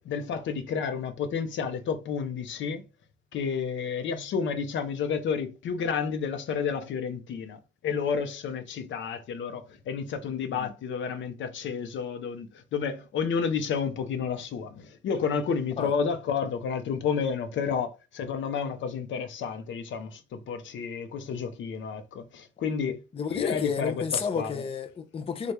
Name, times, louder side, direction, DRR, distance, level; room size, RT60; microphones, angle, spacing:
voice 1, 0.0-2.8 3.3-23.0 23.3-24.0 24.3-24.5, left 6 dB, 70° left, 0.7 m, -31 dB
voice 2, 23.1-25.5, left 6 dB, 30° left, 0.5 m, -31 dB
3.3 x 2.3 x 4.4 m
cardioid pair, 90°, 20 cm